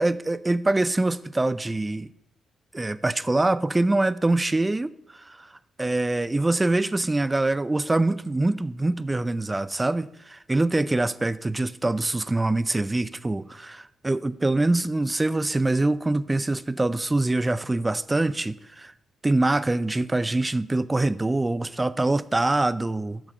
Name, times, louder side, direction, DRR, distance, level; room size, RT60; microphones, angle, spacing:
voice 1, 0.0-2.1 2.7-5.5 5.8-18.9 19.2-23.2, right 2 dB, 20° right, 0.5 m, -24 dB
9.1 x 6.4 x 4.9 m
supercardioid pair, 50°, 0 cm